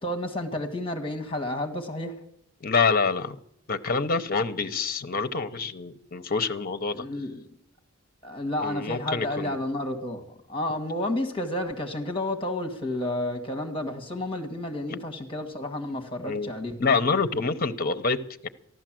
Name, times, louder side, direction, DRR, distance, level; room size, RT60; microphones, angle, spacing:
voice 1, 0.0-2.1 6.9-7.5 8.2-10.2 10.5-16.7, left 1 dB, 25° left, 1.8 m, -31 dB
voice 2, 2.6-3.4 3.7-7.1 8.6-9.6 16.2-16.5 16.8-18.5, left 4 dB, 45° left, 0.8 m, -26 dB
14.5 x 12.0 x 7.6 m
head